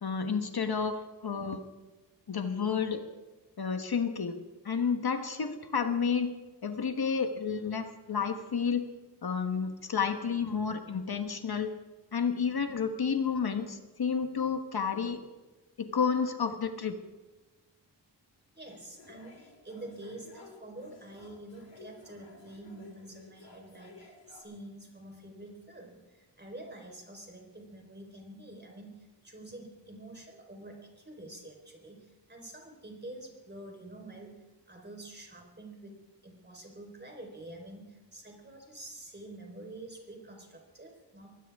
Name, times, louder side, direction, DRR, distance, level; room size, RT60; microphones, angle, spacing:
voice 1, 0.0-1.6 2.3-3.0 3.6-4.4 4.6-6.3 6.6-8.9 9.2-11.7 12.1-15.2 15.8-17.0, left 6 dB, 55° left, 7 dB, 1.3 m, -30 dB
voice 2, 18.5-41.4, right 1 dB, 25° right, 1 dB, 4.2 m, -47 dB
sound 1, 18.7-24.4, left 3 dB, 80° left, 5.0 m, -54 dB
22.5 x 18.0 x 3.6 m, 1.2 s
wide cardioid pair, 95°, 44 cm